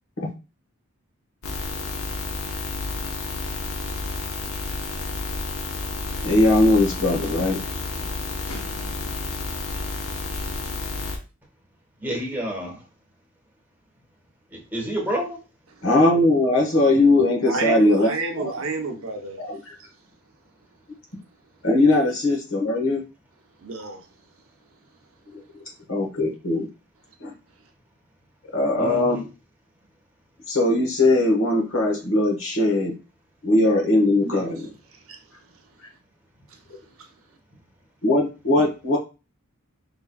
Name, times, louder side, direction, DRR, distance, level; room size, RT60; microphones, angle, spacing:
sound 1, 1.4-11.2, left 3 dB, 85° left, 0.9 m, -30 dB
voice 1, 6.2-7.6 8.0-8.1 15.8-18.1 18.4-18.5 19.4-19.7 21.6-23.0 25.9-26.7 27.2-27.3 28.5-29.2 30.5-32.9 33.4-34.7 38.0-39.0, left 2 dB, 65° left, 1.4 m, -20 dB
voice 2, 12.0-12.8 14.5-15.4 28.8-29.2, equal, 10° right, 1.3 m, -29 dB
voice 3, 17.5-19.4 23.6-24.1 34.2-34.5 34.9-35.2 36.5-36.6 37.0-37.1, right 3 dB, 70° right, 0.8 m, -31 dB
5.0 x 3.4 x 2.3 m
head